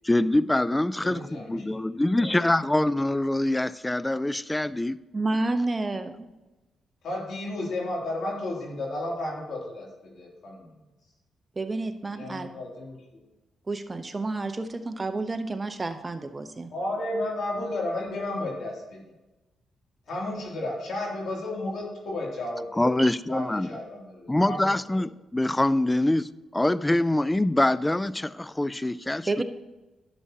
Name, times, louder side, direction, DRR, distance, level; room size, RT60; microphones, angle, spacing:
voice 1, 0.0-5.0 22.8-23.7 24.3-29.4, left 1 dB, 15° left, 18 dB, 0.3 m, -24 dB
voice 2, 1.0-2.3 7.0-10.7 12.1-13.2 16.7-19.0 20.1-22.9 23.3-24.7, left 1 dB, 70° left, -2 dB, 2.7 m, -33 dB
voice 3, 5.1-6.3 11.6-12.5 13.7-16.7 23.0-23.1 29.3-29.4, right 2 dB, 30° right, 8 dB, 0.8 m, -30 dB
11.0 x 7.3 x 2.8 m, 1.1 s
supercardioid pair, 60°, 0 cm